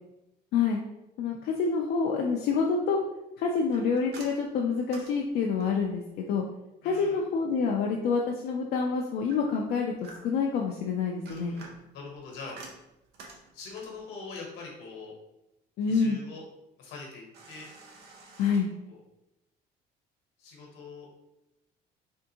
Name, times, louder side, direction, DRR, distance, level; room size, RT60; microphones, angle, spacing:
voice 1, 1.2-3.0 3.4-6.0 6.3-6.4 6.8-11.5 15.8-16.2 18.4-18.7, left 5 dB, 70° left, 0 dB, 0.4 m, -27 dB
sound 1, 3.7-5.9 9.3-10.5 11.0-14.0 17.3-18.5, right 3 dB, 75° right, 0.7 m, -50 dB
voice 2, 6.8-7.2 11.3-11.7 11.9-12.6 13.5-15.1 15.9-16.4 16.8-17.7 18.5-19.0 20.4-21.1, left 4 dB, 85° left, -1 dB, 1.1 m, -43 dB
3.5 x 2.5 x 2.8 m, 0.91 s
cardioid pair, 110°, 17 cm